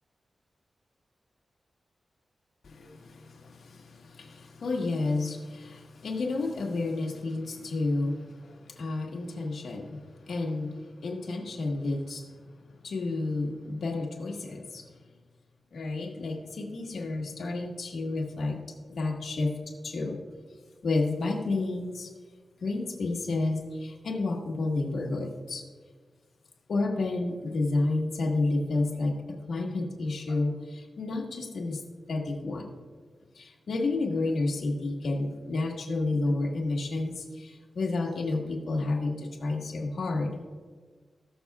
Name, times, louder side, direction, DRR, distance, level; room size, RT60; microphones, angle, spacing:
voice 1, 2.6-15.0 15.7-19.6 19.8-20.2 20.8-22.1 22.6-25.6 26.7-31.8 32.1-32.8 33.3-40.4, left 2 dB, 75° left, 1 dB, 1.5 m, -31 dB
19.0 x 6.8 x 2.4 m, 1.5 s
wide cardioid pair, 165°, 0 cm